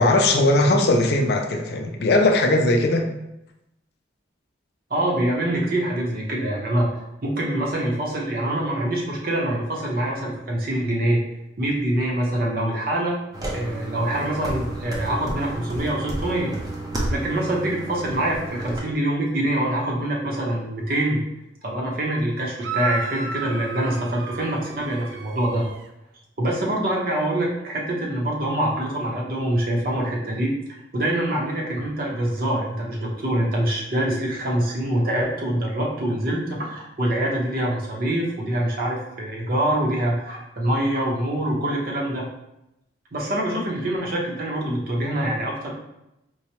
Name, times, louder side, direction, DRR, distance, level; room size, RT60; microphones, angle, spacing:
voice 1, 0.0-3.1, left 2 dB, 60° left, 3 dB, 0.4 m, -19 dB
voice 2, 4.9-6.9 7.2-11.2 11.6-13.2 13.5-16.5 17.1-21.2 21.6-25.7 26.4-30.5 30.9-42.3 43.1-45.7, right 1 dB, 50° right, -2 dB, 0.8 m, -25 dB
sound 1, 13.3-18.8, right 1 dB, 20° right, 0.5 m, -31 dB
sound 2, 22.6-25.9, right 4 dB, 80° right, 0.3 m, -33 dB
4.5 x 2.1 x 2.8 m, 0.88 s
head